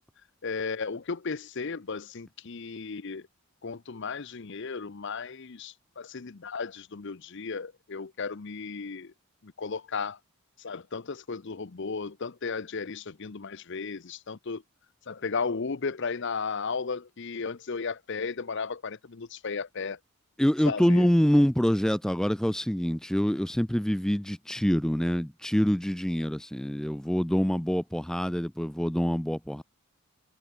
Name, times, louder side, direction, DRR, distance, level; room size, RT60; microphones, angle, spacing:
voice 1, 0.4-3.3 3.6-9.1 9.4-10.2 10.6-14.6 15.1-20.0 20.7-21.1, left 5 dB, 55° left, 0.7 m, -35 dB
voice 2, 20.4-29.6, equal, 5° left, 0.4 m, -25 dB
head